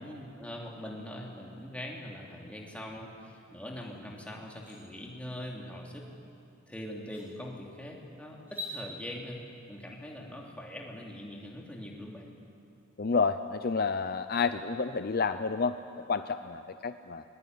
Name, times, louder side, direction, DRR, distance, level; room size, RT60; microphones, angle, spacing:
voice 1, 0.0-6.0 6.7-9.4 9.7-12.3, left 1 dB, 5° left, -1 dB, 2.9 m, -42 dB
sound 1, 3.8-3.9 4.3-4.8 6.4-6.5 7.0-7.3 8.4-8.8, left 2 dB, 10° right, 6.5 m, -42 dB
voice 2, 13.0-15.8 16.1-17.2, left 4 dB, 45° left, 10 dB, 0.6 m, -29 dB
21.5 x 20.5 x 9.5 m, 2.7 s
head